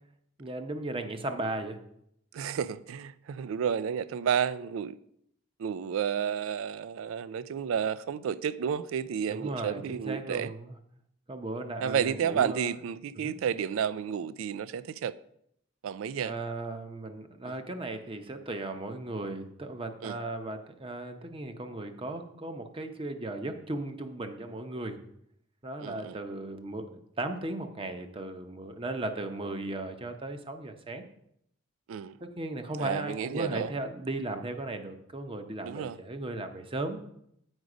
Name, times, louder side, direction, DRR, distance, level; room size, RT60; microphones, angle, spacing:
voice 1, 0.4-1.8 9.3-10.7 11.3-12.7 13.2-13.3 16.2-25.0 25.6-31.0 32.2-37.0, right 2 dB, 25° right, 0.7 m, -36 dB
voice 2, 2.3-5.0 5.6-10.5 11.8-15.1 15.8-16.3 17.5-17.6 20.0-20.2 25.8-26.2 31.9-32.2 32.8-33.7 35.6-36.0, right 8 dB, 90° right, 0.3 m, -31 dB
8.0 x 5.2 x 4.9 m
head